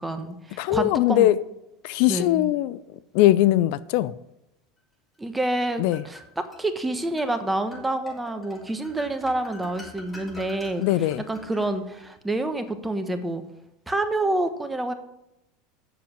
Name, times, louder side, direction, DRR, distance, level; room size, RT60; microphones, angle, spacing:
voice 1, 0.0-1.3 2.1-2.5 5.2-13.4 13.9-14.9, right 2 dB, 10° right, 1.2 m, -28 dB
voice 2, 0.6-1.4 1.8-2.8 3.1-4.1 5.8-6.0 10.8-11.2, left 14 dB, 65° left, 0.3 m, -20 dB
sound 1, 5.3-6.6 7.2-7.3 7.7-12.1, left 1 dB, 15° left, 3.7 m, -46 dB
7.7 x 6.8 x 7.3 m
hypercardioid pair, 90°, 0 cm